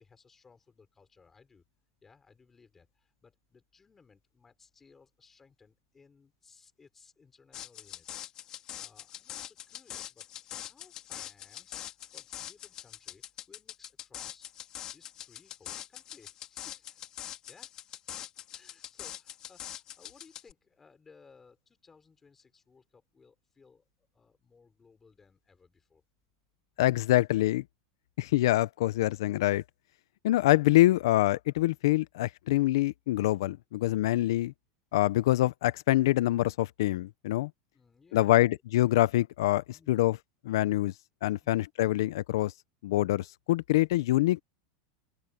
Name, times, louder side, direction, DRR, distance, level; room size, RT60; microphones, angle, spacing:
voice 1, 0.0-1.7 2.0-8.2 8.7-10.3 10.7-14.5 14.9-17.0 17.5-17.7 18.5-26.0 37.7-38.6 39.7-40.1 41.4-41.6, left 5 dB, 10° left, 5.5 m, -61 dB
sound 1, 7.5-20.5, left 12 dB, 25° left, 3.3 m, -43 dB
voice 2, 26.8-27.6 28.2-29.6 30.2-34.5 34.9-37.5 38.1-40.2 40.4-40.9 41.2-42.5 42.8-44.4, left 16 dB, 65° left, 0.6 m, -25 dB
open air
supercardioid pair, 170°, 2 cm